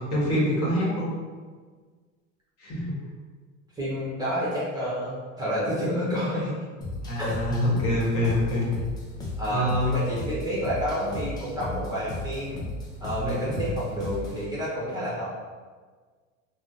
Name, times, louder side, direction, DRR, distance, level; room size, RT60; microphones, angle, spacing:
voice 1, 0.1-1.1 2.6-3.0 7.0-8.7 9.5-9.9 13.2-13.6, equal, 40° left, -5 dB, 1.2 m, -25 dB
voice 2, 3.7-6.5 7.2-7.3 9.4-12.6 13.0-15.3, equal, 10° right, -8 dB, 0.7 m, -29 dB
sound 1, 6.8-14.5, left 2 dB, 10° left, 0.3 m, -35 dB
3.5 x 2.1 x 2.6 m, 1.5 s
supercardioid pair, 115°, 38 cm